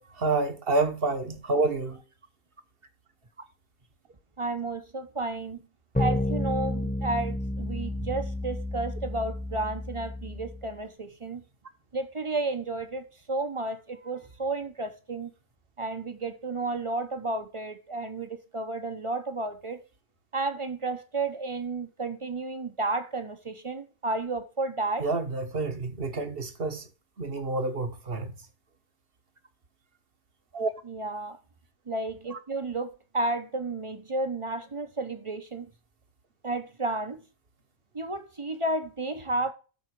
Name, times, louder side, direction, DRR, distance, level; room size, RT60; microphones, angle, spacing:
voice 1, 0.2-2.0 25.0-26.9 27.2-28.3 30.5-30.7, right 3 dB, 45° right, 1.3 m, -28 dB
voice 2, 4.4-5.7 6.0-11.4 11.9-15.3 15.8-19.8 20.3-25.1 30.9-31.4 31.9-35.7 36.4-37.2 37.9-39.5, right 2 dB, 25° right, 0.8 m, -32 dB
sound 1, 5.9-10.7, left 1 dB, 5° left, 1.1 m, -31 dB
13.0 x 4.9 x 4.7 m
omnidirectional pair, 1.5 m